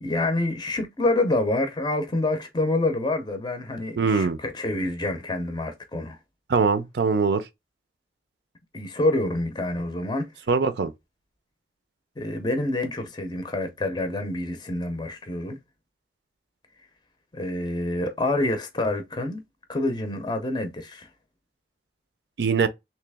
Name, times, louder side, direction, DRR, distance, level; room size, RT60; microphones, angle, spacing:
voice 1, 0.0-6.2 8.7-10.3 12.2-15.6 17.3-19.4 19.7-21.1, left 2 dB, 25° left, 0.6 m, -27 dB
voice 2, 4.0-4.4 6.5-7.4 10.5-10.9 22.4-22.7, right 5 dB, 65° right, 0.5 m, -22 dB
3.2 x 2.9 x 3.4 m
head